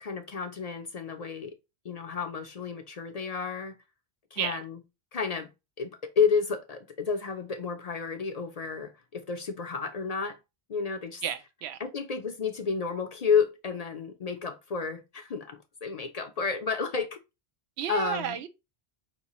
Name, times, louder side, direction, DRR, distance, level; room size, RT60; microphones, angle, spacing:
voice 1, 0.0-1.6 1.8-3.8 4.3-4.8 5.1-5.5 5.8-10.4 10.7-11.2 11.8-17.2 17.9-18.4, left 5 dB, 50° left, 0.5 m, -31 dB
voice 2, 11.2-11.8 17.8-18.5, right 9 dB, 80° right, 0.8 m, -32 dB
4.7 x 3.0 x 2.9 m
omnidirectional pair, 1.1 m